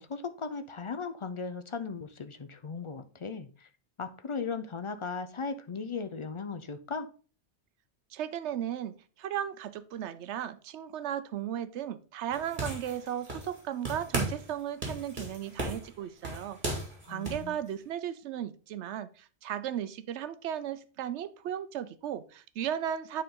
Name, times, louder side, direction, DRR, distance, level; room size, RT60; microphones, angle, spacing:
voice 1, 0.0-3.7 4.0-7.1 17.0-17.6, left 5 dB, 45° left, 0.4 m, -37 dB
voice 2, 8.1-16.6 17.1-23.2, right 10 dB, 85° right, 0.9 m, -35 dB
sound 1, 12.3-13.6 13.9-14.5 14.8-17.5, right 1 dB, 45° right, 2.2 m, -35 dB
9.3 x 3.8 x 3.6 m
omnidirectional pair, 1.1 m